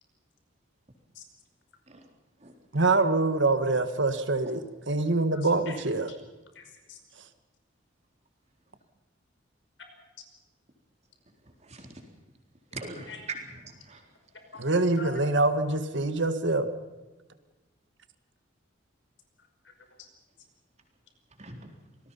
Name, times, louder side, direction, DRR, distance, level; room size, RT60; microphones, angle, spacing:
voice 1, 2.7-6.1 14.6-16.7, right 2 dB, 65° right, 9 dB, 1.8 m, -25 dB
voice 2, 5.3-5.8 6.1-6.2 6.5-7.0 13.1-13.3 14.5-14.7 15.0-15.1 19.4-20.1, left 5 dB, 65° left, 5 dB, 5.4 m, -46 dB
voice 3, 11.6-12.0 12.7-13.4 13.6-14.0 21.4-21.7, right 3 dB, 35° right, 3 dB, 3.9 m, -41 dB
26.5 x 19.5 x 5.7 m, 1.2 s
head